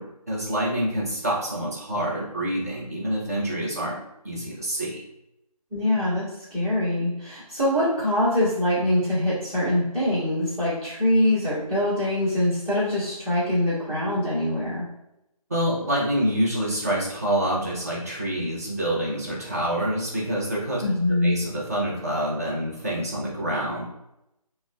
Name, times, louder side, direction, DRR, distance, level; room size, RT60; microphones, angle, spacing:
voice 1, 0.0-4.0 4.2-5.0 15.5-20.8 21.2-23.8, right 1 dB, 25° right, -5 dB, 0.6 m, -27 dB
voice 2, 5.7-14.8 20.8-21.4, left 1 dB, 5° right, -15 dB, 0.9 m, -24 dB
3.6 x 2.1 x 2.2 m, 0.85 s
figure-of-eight pair, 160°, 20 cm